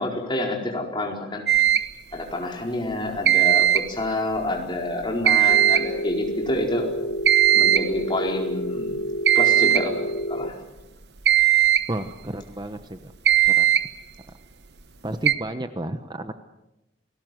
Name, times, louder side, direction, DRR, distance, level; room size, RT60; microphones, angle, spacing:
voice 1, 0.0-1.4 2.1-6.9 7.5-8.9 9.3-10.0 10.3-10.5, left 1 dB, 25° left, 1 dB, 4.6 m, -28 dB
sound 1, 1.5-1.9 3.3-4.0 5.3-6.0 7.3-8.0 9.3-9.9 11.3-11.9 13.3-13.9 15.3-15.4, right 12 dB, 65° right, 1.2 m, -18 dB
Telephone, 5.5-10.5, equal, 65° left, 2.0 m, -29 dB
voice 2, 11.9-13.1 13.4-13.7 15.0-16.3, right 1 dB, 25° right, 9 dB, 0.9 m, -32 dB
29.0 x 19.0 x 7.8 m, 0.96 s
head